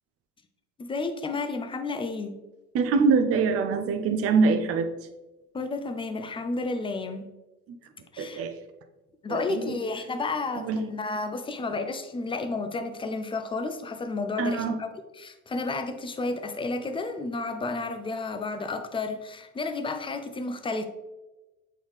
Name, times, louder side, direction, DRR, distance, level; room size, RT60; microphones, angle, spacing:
voice 1, 0.8-2.3 5.5-7.3 8.1-8.4 9.2-20.8, left 3 dB, 15° left, 7 dB, 0.5 m, -32 dB
voice 2, 2.7-4.9 8.2-8.5 9.3-9.8 10.6-10.8 14.4-14.8, right 4 dB, 35° right, 7 dB, 0.6 m, -24 dB
7.4 x 3.9 x 3.4 m, 1.1 s
figure-of-eight pair, 60°, 42 cm